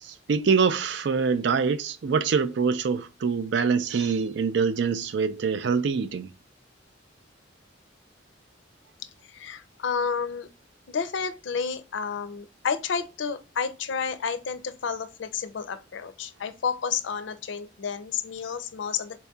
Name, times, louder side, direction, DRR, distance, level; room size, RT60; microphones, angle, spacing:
voice 1, 0.0-6.3, right 5 dB, 65° right, 0.4 m, -25 dB
voice 2, 9.3-10.5 10.9-19.2, left 6 dB, 75° left, 0.5 m, -31 dB
4.1 x 2.7 x 2.2 m
head